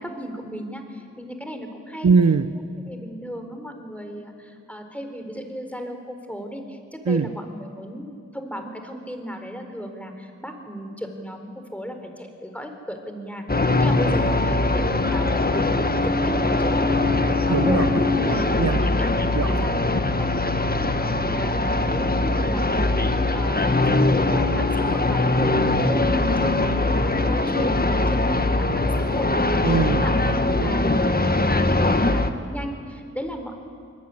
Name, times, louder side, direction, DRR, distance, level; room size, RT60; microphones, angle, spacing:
voice 1, 0.0-2.1 2.9-13.4 13.8-15.7 16.0-17.8 18.3-18.6 19.4-20.3 20.7-23.0 23.3-25.6 25.8-33.5, equal, 5° left, 5 dB, 4.4 m, -35 dB
voice 2, 2.0-2.6 7.1-7.4 17.5-18.9 19.3-19.7 29.6-30.8, right 5 dB, 65° right, 11 dB, 0.9 m, -23 dB
sound 1, 13.5-32.3, left 2 dB, 30° left, 1.6 m, -21 dB
24.5 x 21.0 x 9.9 m, 2.3 s
cardioid pair, 45°, 29 cm